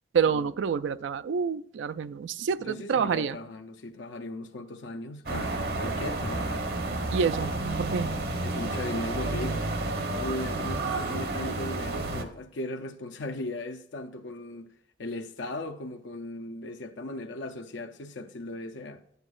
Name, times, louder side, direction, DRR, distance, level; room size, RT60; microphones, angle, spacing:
voice 1, 0.1-3.4 7.1-7.5 7.8-8.1, right 6 dB, 85° right, 0.4 m, -27 dB
voice 2, 2.4-6.7 8.4-9.6 10.1-14.7 15.0-19.0, left 2 dB, 80° left, 0.6 m, -37 dB
sound 1, 5.3-12.2, right 2 dB, 60° right, 0.9 m, -31 dB
10.5 x 8.0 x 2.4 m
head